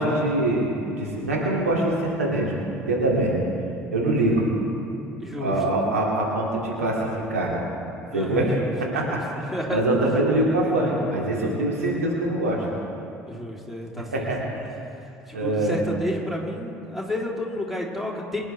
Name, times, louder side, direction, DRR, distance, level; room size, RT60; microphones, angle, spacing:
voice 1, 0.0-3.3 3.9-4.5 5.3-7.0 7.3-7.5 8.1-8.5 8.8-12.6 14.1-14.4 15.3-15.8, right 1 dB, 80° right, -3 dB, 2.4 m, -24 dB
voice 2, 5.2-5.6 8.1-8.7 9.0-9.2 9.5-9.8 13.2-14.3 15.3-18.4, left 1 dB, ahead, -3 dB, 3.2 m, -31 dB
24.5 x 11.0 x 3.4 m, 2.8 s
figure-of-eight pair, 55°, 8 cm